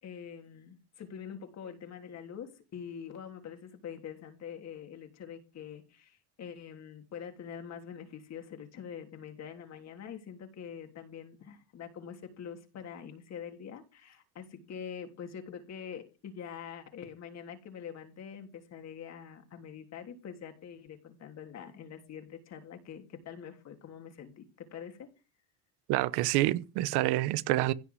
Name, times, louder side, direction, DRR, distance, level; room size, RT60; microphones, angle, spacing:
voice 1, 0.0-25.1, left 8 dB, 45° left, 3.4 m, -45 dB
voice 2, 25.9-27.7, right 16 dB, 85° right, 1.1 m, -27 dB
16.0 x 6.1 x 9.7 m
cardioid pair, 150°, 38 cm